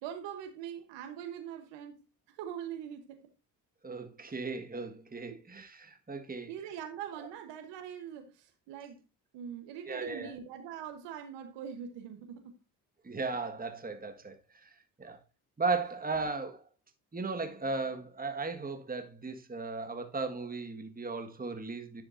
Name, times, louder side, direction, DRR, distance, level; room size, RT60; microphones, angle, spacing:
voice 1, 0.0-3.3 4.2-4.3 5.3-5.4 6.5-9.0 9.3-12.6 15.0-15.2, right 9 dB, 90° right, 1.2 m, -43 dB
voice 2, 3.8-6.5 7.2-7.3 9.9-10.3 13.0-14.4 14.6-14.7 15.0-15.2 15.6-16.6 17.1-22.0, right 3 dB, 20° right, 1.6 m, -36 dB
10.5 x 6.9 x 2.6 m
supercardioid pair, 60°, 42 cm